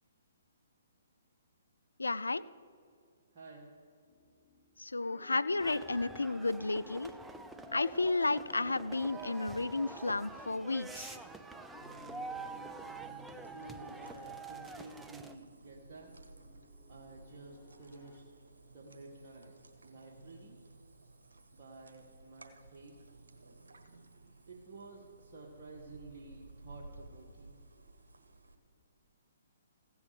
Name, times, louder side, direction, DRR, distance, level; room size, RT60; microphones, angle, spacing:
voice 1, 2.0-2.4 4.8-7.1 7.7-11.2, left 3 dB, 85° left, 17 dB, 0.4 m, -32 dB
voice 2, 3.3-3.7 13.5-16.3 16.9-18.2 18.7-19.5 19.8-20.6 21.5-23.0 24.5-27.6, right 3 dB, 45° right, -3 dB, 1.9 m, -52 dB
sound 1, 4.1-18.2, left 5 dB, 35° left, 1.0 m, -59 dB
sound 2, 5.6-15.3, right 3 dB, 5° right, 0.6 m, -47 dB
sound 3, 11.8-28.6, right 3 dB, 75° right, 1.4 m, -56 dB
16.0 x 7.0 x 6.8 m, 2.3 s
figure-of-eight pair, 130°, 0 cm